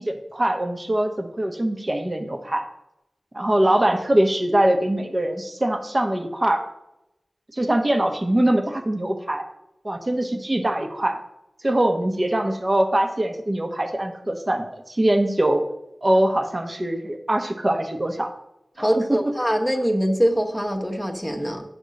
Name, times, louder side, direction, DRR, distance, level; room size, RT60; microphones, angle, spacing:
voice 1, 0.0-2.6 3.3-6.6 7.5-9.4 9.8-11.2 11.6-15.6 16.0-18.3 18.8-19.2, right 1 dB, 30° right, 6 dB, 1.0 m, -22 dB
voice 2, 18.8-21.6, equal, ahead, 2 dB, 1.1 m, -23 dB
9.3 x 3.5 x 6.4 m, 0.86 s
wide cardioid pair, 75°, 0 cm